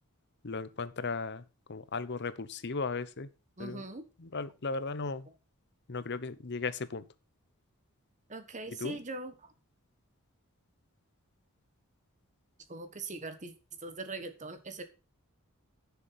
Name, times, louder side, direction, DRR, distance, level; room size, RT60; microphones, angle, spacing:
voice 1, 0.4-1.4 1.7-3.3 3.6-3.8 4.2-5.3 5.9-7.0 8.8-9.0, left 4 dB, 50° left, 14 dB, 0.8 m, -36 dB
voice 2, 3.6-4.1 8.3-9.5 12.7-13.5 13.8-14.8, right 3 dB, 35° right, 9 dB, 1.4 m, -41 dB
10.0 x 7.0 x 5.7 m, 0.31 s
head